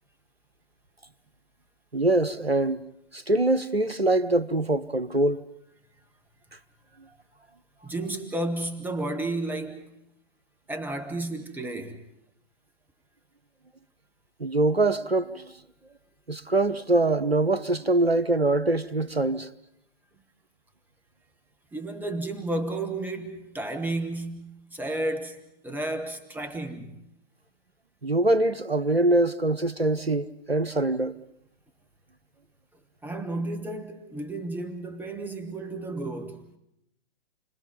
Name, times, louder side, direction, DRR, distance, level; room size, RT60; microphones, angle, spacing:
voice 1, 1.9-2.8 3.1-5.4 14.4-15.5 16.3-19.5 28.0-31.1, right 2 dB, 90° right, 1.2 m, -24 dB
voice 2, 7.8-9.9 10.7-12.0 21.7-27.0 33.0-36.4, right 2 dB, 5° right, 1.4 m, -32 dB
29.5 x 21.0 x 5.3 m
figure-of-eight pair, 120°, 29 cm